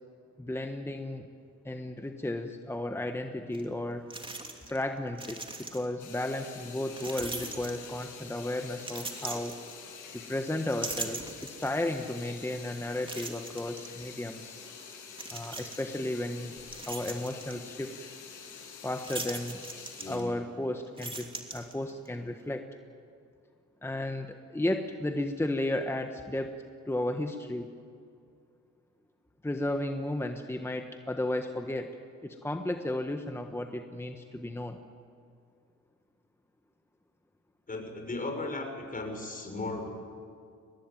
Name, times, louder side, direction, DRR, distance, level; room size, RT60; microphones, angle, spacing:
voice 1, 0.4-1.3 1.6-4.1 4.6-9.6 10.1-14.6 15.3-16.6 16.9-18.0 18.8-19.6 20.0-22.7 23.8-26.6 26.9-27.7 29.4-34.8, left 1 dB, 10° left, 5 dB, 1.3 m, -34 dB
sound 1, 3.5-3.6 4.1-4.8 5.1-6.0 7.0-8.2 8.8-10.2 10.6-11.9 12.4-12.5 13.1-13.9 15.1-16.0 16.4-17.6 19.0-20.5 20.8-22.1, right 2 dB, 15° right, 3.0 m, -40 dB
sound 2, 6.0-20.2, left 6 dB, 80° left, 6.6 m, -47 dB
voice 2, 37.7-39.9, left 2 dB, 30° left, 4 dB, 5.8 m, -36 dB
23.5 x 19.5 x 9.2 m, 2.4 s
cardioid pair, 90°, 30 cm